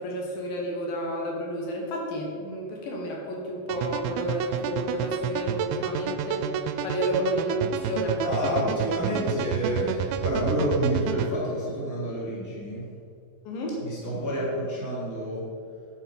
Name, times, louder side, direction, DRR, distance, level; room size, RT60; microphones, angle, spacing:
voice 1, 0.0-6.4 6.8-8.7 13.4-13.8, equal, 70° left, -1 dB, 3.1 m, -31 dB
sound 1, 3.7-11.3, right 9 dB, 85° right, 2.5 m, -30 dB
voice 2, 8.2-12.9 13.8-15.4, equal, 5° left, -7 dB, 2.3 m, -28 dB
9.5 x 8.4 x 5.4 m, 2.3 s
omnidirectional pair, 4.3 m